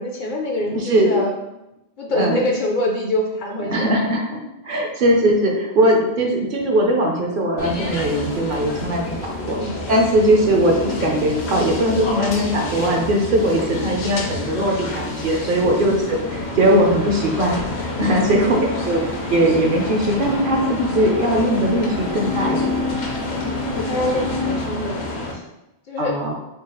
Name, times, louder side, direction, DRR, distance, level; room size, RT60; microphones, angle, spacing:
voice 1, 0.0-1.6 2.0-3.9 6.5-6.6 9.4-9.8 15.6-16.1 18.2-18.6 23.7-25.4 25.9-26.2, left 1 dB, 55° left, 1 dB, 0.6 m, -25 dB
voice 2, 0.7-1.1 2.1-2.4 3.7-4.4 4.6-9.6 9.9-19.0 19.3-22.7 26.0-26.3, right 1 dB, 55° right, 1 dB, 0.8 m, -20 dB
sound 1, 7.6-25.3, left 2 dB, 75° left, 1.0 m, -29 dB
sound 2, 17.6-24.5, left 3 dB, 90° left, 1.4 m, -29 dB
4.0 x 2.4 x 3.8 m, 0.92 s
omnidirectional pair, 1.1 m